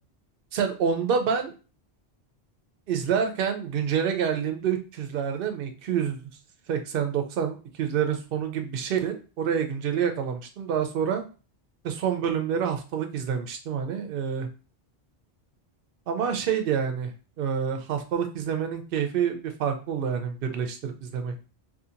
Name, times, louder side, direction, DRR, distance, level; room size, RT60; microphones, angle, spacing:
voice 1, 0.5-1.5 2.9-6.2 6.7-11.2 11.8-14.5 16.1-17.1 17.4-21.4, right 7 dB, 65° right, 6 dB, 0.7 m, -27 dB
2.7 x 2.6 x 2.5 m, 0.35 s
omnidirectional pair, 1.1 m